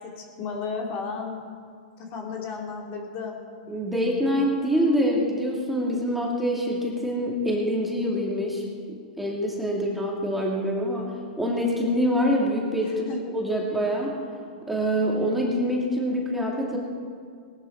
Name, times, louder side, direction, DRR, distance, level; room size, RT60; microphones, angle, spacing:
voice 1, 0.0-1.4 2.0-3.4 13.1-13.2, left 5 dB, 40° left, 0 dB, 2.5 m, -33 dB
voice 2, 3.7-8.6 9.2-11.0 11.4-14.2 14.7-16.8, equal, 5° right, -3 dB, 2.4 m, -25 dB
18.5 x 12.5 x 4.6 m, 2.1 s
hypercardioid pair, 130°, 4 cm